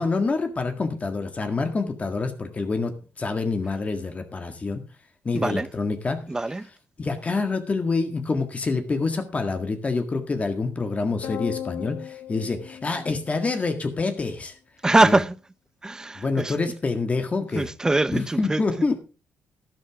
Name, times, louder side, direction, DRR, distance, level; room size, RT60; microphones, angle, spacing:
voice 1, 0.0-2.9 3.2-4.8 5.2-6.2 7.0-14.5 15.0-15.2 16.2-17.7 18.1-19.0, left 3 dB, 30° left, 1.8 m, -26 dB
voice 2, 5.3-5.7 6.3-6.7 14.8-15.3 15.8-16.5 17.5-18.6, right 2 dB, 15° right, 0.7 m, -22 dB
sound 1, 11.2-13.8, left 10 dB, 75° left, 0.6 m, -36 dB
12.5 x 11.5 x 3.6 m
cardioid pair, 105°, 5 cm